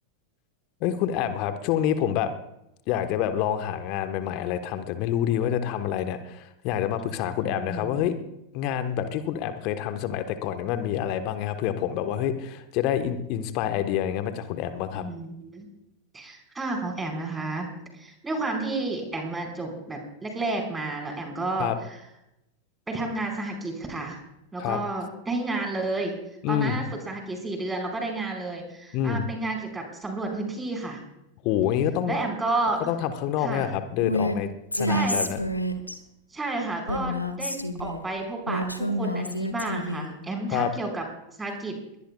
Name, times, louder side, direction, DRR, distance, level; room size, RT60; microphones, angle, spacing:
voice 1, 0.8-2.3 2.9-8.1 8.5-15.0 21.6-21.8 24.6-24.8 26.4-26.8 28.9-29.2 31.4-32.3 32.8-35.4 40.5-40.7, left 10 dB, 45° left, 9 dB, 1.3 m, -27 dB
voice 2, 7.5-8.0 14.9-15.7 16.1-17.7 17.9-22.0 22.9-24.2 24.5-26.2 26.5-31.0 32.1-32.8 33.4-33.7 34.9-35.3 36.3-41.0 41.4-41.8, right 2 dB, 10° right, 2 dB, 5.0 m, -31 dB
Female speech woman speaking, 34.0-34.4 34.7-36.0 36.9-38.0 38.5-40.1, equal, 85° left, 1.5 m, -28 dB
22.0 x 20.5 x 2.4 m, 0.85 s
figure-of-eight pair, 90°, 0 cm